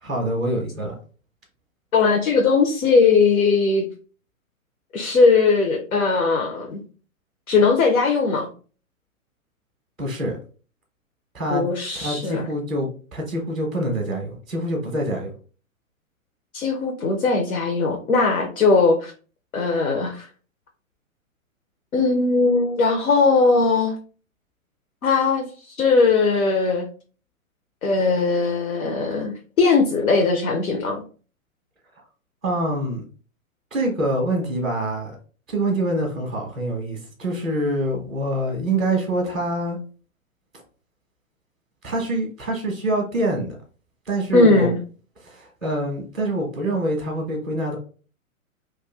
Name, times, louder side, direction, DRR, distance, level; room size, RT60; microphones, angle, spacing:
voice 1, 0.0-0.9 10.0-10.4 11.3-11.6 11.9-15.3 32.4-33.0 33.7-35.2 35.5-39.8 41.8-43.5 44.1-44.7 45.2-47.8, right 1 dB, ahead, -1 dB, 0.4 m, -25 dB
voice 2, 1.9-3.9 4.9-6.8 7.5-8.5 11.5-12.5 16.5-19.1 19.5-20.3 21.9-24.0 25.0-26.9 27.8-31.0 44.3-44.8, left 4 dB, 75° left, 2 dB, 0.8 m, -19 dB
2.5 x 2.3 x 3.3 m, 0.39 s
figure-of-eight pair, 115°, 42 cm